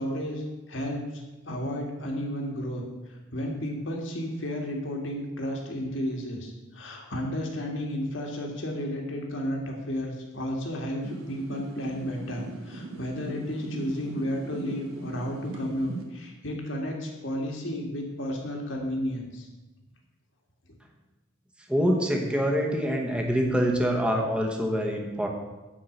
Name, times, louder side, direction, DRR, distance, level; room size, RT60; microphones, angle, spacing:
voice 1, 0.0-2.8 3.3-19.5, equal, 65° left, 0 dB, 2.0 m, -32 dB
sound 1, 11.0-16.0, right 2 dB, 90° right, 1.4 m, -40 dB
voice 2, 21.7-25.3, equal, 5° right, 1 dB, 1.1 m, -25 dB
9.8 x 4.7 x 7.9 m, 1.1 s
head